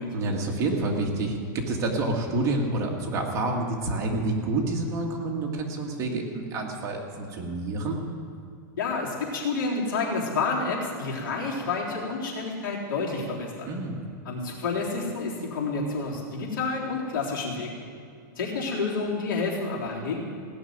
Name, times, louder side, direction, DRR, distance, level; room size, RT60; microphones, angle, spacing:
voice 1, 0.1-8.0 13.7-14.0, right 2 dB, 30° right, 0 dB, 2.0 m, -28 dB
voice 2, 8.8-13.7 14.3-17.7 18.4-20.2, left 4 dB, 80° left, -3 dB, 3.7 m, -29 dB
16.5 x 6.7 x 9.4 m, 2.3 s
supercardioid pair, 150°, 11 cm